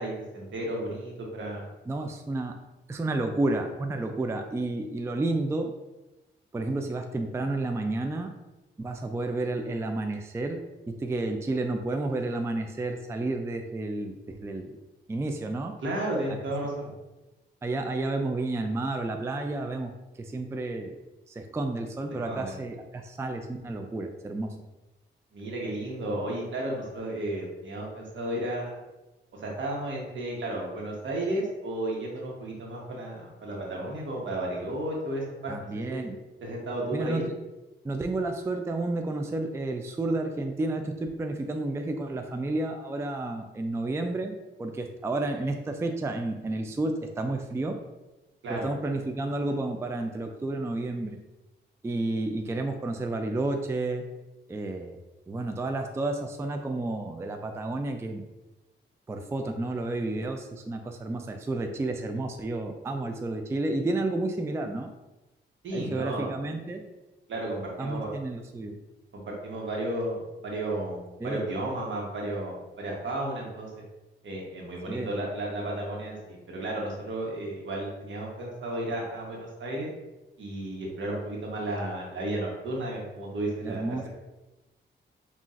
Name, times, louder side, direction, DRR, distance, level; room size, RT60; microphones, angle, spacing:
voice 1, 0.0-1.6 15.8-16.9 22.3-22.5 25.3-28.8 29.3-36.0 36.4-37.2 48.4-48.7 65.6-66.3 67.3-68.1 69.1-73.7 74.2-79.9 80.4-84.1, right 1 dB, 70° right, -2 dB, 1.1 m, -33 dB
voice 2, 1.9-2.5 2.9-5.7 6.5-8.3 8.8-14.8 15.1-15.7 16.3-16.4 17.6-19.9 20.2-21.0 21.3-24.5 35.5-36.2 36.9-37.2 37.8-47.8 48.5-51.2 51.8-54.0 54.5-55.0 55.3-58.2 59.1-64.9 65.7-66.8 67.8-68.8 71.2-71.4 74.9-75.1 83.6-84.0, right 2 dB, 15° right, 5 dB, 0.3 m, -31 dB
5.5 x 2.4 x 2.4 m, 1.0 s
cardioid pair, 75°, 20 cm